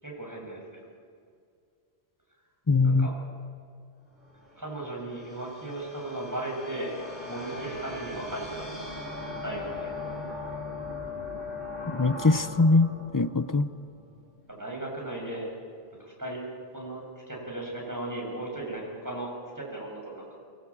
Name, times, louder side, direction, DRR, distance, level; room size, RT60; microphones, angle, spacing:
voice 1, 0.0-0.8 2.8-3.1 4.6-6.9 7.3-8.8 9.4-9.9 14.5-15.5 16.0-16.4 16.7-20.3, right 2 dB, 15° right, -2 dB, 7.1 m, -36 dB
voice 2, 2.7-3.1 11.9-13.7, left 3 dB, 25° left, 13 dB, 0.5 m, -22 dB
sound 1, 4.2-14.5, left 2 dB, 45° right, 5.5 m, -39 dB
23.0 x 20.5 x 8.6 m, 2.2 s
omnidirectional pair, 1.1 m